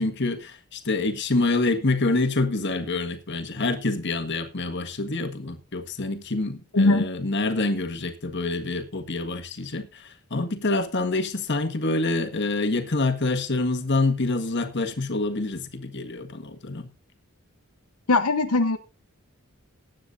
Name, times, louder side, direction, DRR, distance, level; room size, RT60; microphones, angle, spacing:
voice 1, 0.0-16.9, left 2 dB, 55° left, 1.6 m, -26 dB
voice 2, 6.7-7.1 18.1-18.8, left 2 dB, 90° left, 1.0 m, -20 dB
19.5 x 9.5 x 2.6 m
head